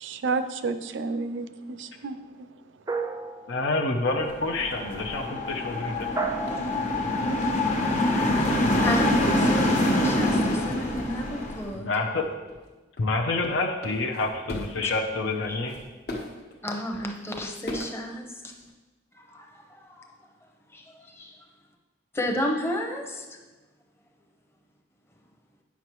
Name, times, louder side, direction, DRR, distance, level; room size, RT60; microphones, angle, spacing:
voice 1, 0.0-2.2, right 4 dB, 75° right, 11 dB, 0.5 m, -30 dB
sound 1, 2.9-3.9 6.2-7.0, right 5 dB, 20° right, 0.4 m, -32 dB
voice 2, 3.5-6.1 11.7-12.2 13.0-15.8, left 3 dB, 80° left, 2 dB, 0.7 m, -28 dB
sound 2, 4.2-4.3 4.6-8.1 8.4-10.9 11.1-11.3 11.6-11.8 12.0-18.7, left 1 dB, 60° left, 1.2 m, -42 dB
sound 3, 4.3-11.7, left 1 dB, 40° left, 0.9 m, -25 dB
voice 3, 8.7-9.1 9.4-9.7 10.0-11.9 14.8-14.9 15.5-15.6 16.6-18.4 19.2-20.1 20.7-21.4 22.1-23.4, left 1 dB, 15° left, 2 dB, 0.8 m, -32 dB
9.4 x 5.7 x 3.0 m, 1.2 s
head